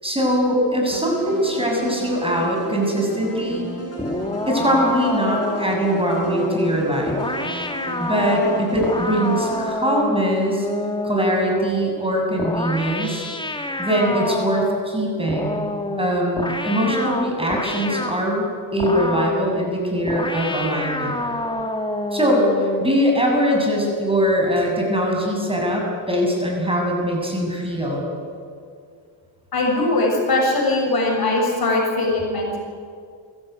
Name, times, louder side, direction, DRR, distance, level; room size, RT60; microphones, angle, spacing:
voice 1, 0.0-3.7 4.5-7.2 8.0-10.7 11.0-13.2 13.8-15.6 16.0-18.5 18.7-21.2 22.1-28.1, equal, 10° right, 0 dB, 7.2 m, -22 dB
sound 1, 0.9-9.6, right 1 dB, 30° left, 7.5 m, -34 dB
sound 2, 4.0-11.8 12.4-14.9 15.3-18.2 18.8-19.4 20.1-22.9, left 1 dB, 10° left, 1.9 m, -27 dB
voice 2, 29.5-32.6, left 2 dB, 50° left, 1 dB, 6.7 m, -20 dB
22.0 x 16.0 x 9.4 m, 2.2 s
cardioid pair, 85°, 45 cm